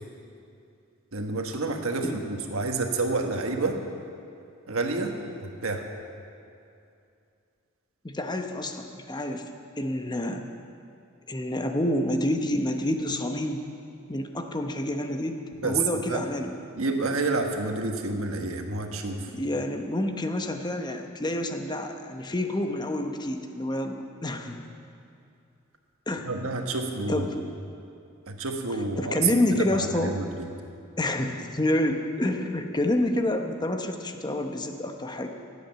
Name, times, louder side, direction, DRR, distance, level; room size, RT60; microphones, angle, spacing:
voice 1, 1.1-3.8 4.7-5.8 15.6-15.8 16.1-16.2 16.8-19.3 26.2-27.3 28.3-30.5, right 3 dB, 80° right, 4 dB, 1.4 m, -29 dB
voice 2, 8.0-10.4 11.3-13.6 14.1-16.5 19.3-24.7 26.1-26.3 27.1-27.5 29.0-30.2 31.0-35.3, left 1 dB, 20° left, 5 dB, 0.9 m, -28 dB
18.0 x 8.5 x 7.0 m, 2.6 s
head